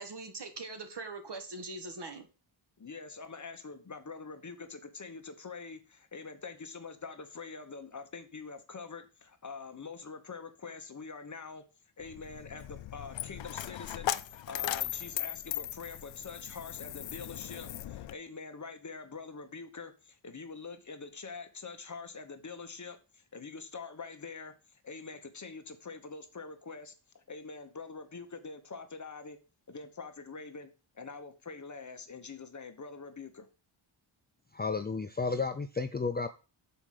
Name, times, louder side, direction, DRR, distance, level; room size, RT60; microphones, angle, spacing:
voice 1, 0.0-2.3, right 3 dB, 55° right, 1.7 m, -42 dB
voice 2, 2.8-11.6 12.0-29.4 29.7-33.5, left 4 dB, 35° left, 1.1 m, -45 dB
Coin (dropping), 12.0-18.1, left 12 dB, 65° left, 0.6 m, -38 dB
voice 3, 34.5-36.3, left 4 dB, 20° left, 0.4 m, -32 dB
6.9 x 4.8 x 5.8 m
wide cardioid pair, 125°, 49 cm